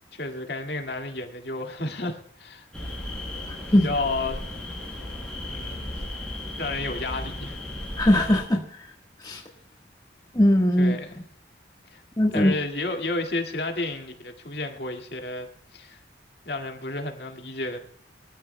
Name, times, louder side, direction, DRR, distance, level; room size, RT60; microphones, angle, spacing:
voice 1, 0.1-2.7 3.7-4.4 5.5-6.0 6.6-7.6 10.8-11.2 11.9-12.0 12.3-16.0 16.5-17.8, left 2 dB, 60° left, 2.0 m, -32 dB
sound 1, 2.7-8.4, left 1 dB, ahead, 5.2 m, -35 dB
voice 2, 8.0-8.8 9.2-9.4 10.3-11.0 12.2-12.5, left 1 dB, 20° left, 1.3 m, -20 dB
22.5 x 14.0 x 2.2 m
head